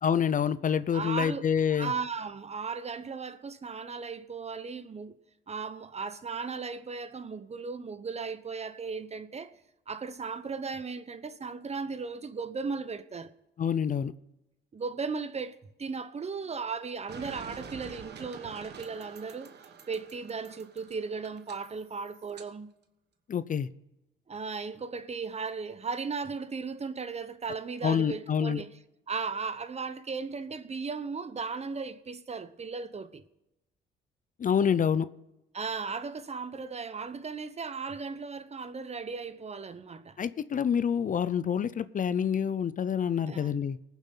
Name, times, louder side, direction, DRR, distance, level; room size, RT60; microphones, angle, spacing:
voice 1, 0.0-1.9 13.6-14.1 23.3-23.7 27.8-28.6 34.4-35.1 40.2-43.8, left 7 dB, 40° left, 0.6 m, -27 dB
voice 2, 0.9-5.2 5.5-9.5 9.9-13.3 14.7-19.5 19.9-22.7 24.3-28.7 29.1-33.2 35.5-40.2 43.3-43.5, right 5 dB, 35° right, 0.9 m, -36 dB
sound 1, 17.1-22.5, right 6 dB, 55° right, 1.3 m, -47 dB
19.5 x 7.3 x 3.9 m
cardioid pair, 90°, 20 cm